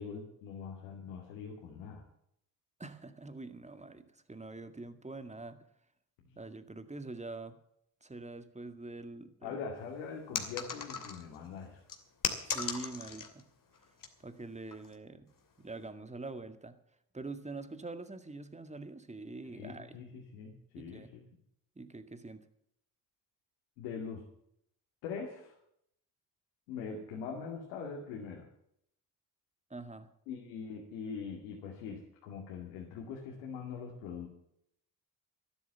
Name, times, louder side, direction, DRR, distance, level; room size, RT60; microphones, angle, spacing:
voice 1, 0.0-2.0 6.2-6.4 9.4-11.8 19.4-21.2 23.8-24.2 25.0-25.5 26.7-28.5 30.3-34.3, left 6 dB, 90° left, -1 dB, 2.5 m, -42 dB
voice 2, 2.8-5.6 6.4-7.5 8.0-9.6 12.4-13.4 14.2-15.3 15.6-16.7 17.1-20.0 20.8-21.1 21.8-22.5 29.7-30.1, right 3 dB, 15° right, 10 dB, 2.0 m, -44 dB
sound 1, 10.3-11.4 11.9-13.4 13.7-14.1 14.7-14.9, left 5 dB, 45° left, 2.8 m, -37 dB
12.5 x 11.5 x 7.3 m, 0.72 s
hypercardioid pair, 55°, 45 cm